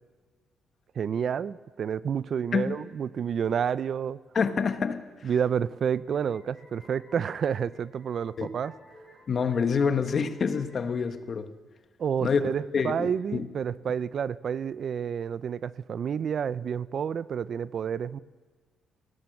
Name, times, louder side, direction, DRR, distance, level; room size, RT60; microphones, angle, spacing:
voice 1, 1.0-4.2 5.2-8.7 12.0-18.2, right 7 dB, 55° right, 0.5 m, -29 dB
voice 2, 4.3-5.3 8.4-8.5 9.3-11.5 12.2-13.5, left 5 dB, 50° left, 1.3 m, -27 dB
sound 1, 5.8-11.1, left 2 dB, 20° left, 4.3 m, -56 dB
19.5 x 18.0 x 7.8 m
cardioid pair, 90°, 0 cm